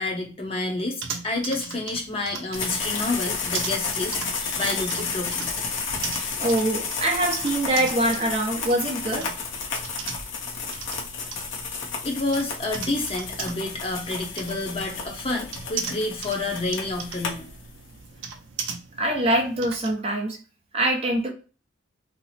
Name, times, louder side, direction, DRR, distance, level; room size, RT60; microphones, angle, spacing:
voice 1, 0.0-5.5 12.0-17.5, left 2 dB, 30° left, 0.7 m, -29 dB
sound 1, 1.0-19.9, right 6 dB, 75° right, 0.6 m, -39 dB
sound 2, 2.5-18.0, left 5 dB, 70° left, 0.8 m, -32 dB
voice 2, 6.2-9.3 19.0-20.4 20.7-21.3, right 1 dB, 30° right, 0.7 m, -24 dB
2.9 x 2.0 x 4.1 m
head